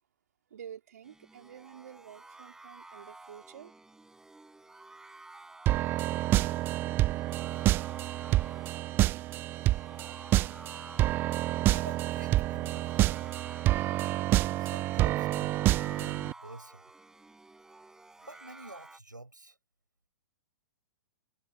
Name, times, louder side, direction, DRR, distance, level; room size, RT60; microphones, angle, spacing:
voice 1, 0.5-3.7, right 9 dB, 60° right, 2.3 m, -49 dB
sound 1, 1.0-19.0, right 2 dB, 5° right, 5.3 m, -52 dB
sound 2, 5.7-16.3, right 16 dB, 20° right, 0.3 m, -28 dB
voice 2, 11.7-13.2 14.6-16.9 18.2-19.6, right 2 dB, 85° right, 6.3 m, -48 dB
figure-of-eight pair, 110°, 10 cm